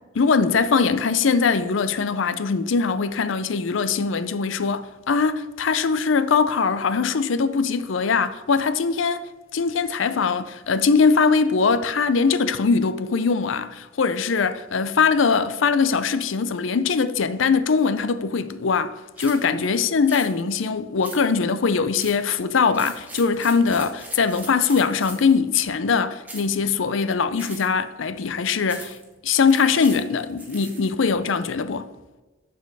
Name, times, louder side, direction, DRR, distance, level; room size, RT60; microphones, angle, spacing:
voice 1, 0.1-29.0 29.2-31.9, left 5 dB, 85° left, 0.5 m, -21 dB
sound 1, 19.2-19.5 20.1-20.3 21.0-21.4 22.0-22.3 22.7-25.3 26.2-26.6 27.4-27.8 28.7-29.0 29.5-30.9, right 2 dB, 10° right, 1.5 m, -40 dB
12.5 x 4.6 x 4.7 m
head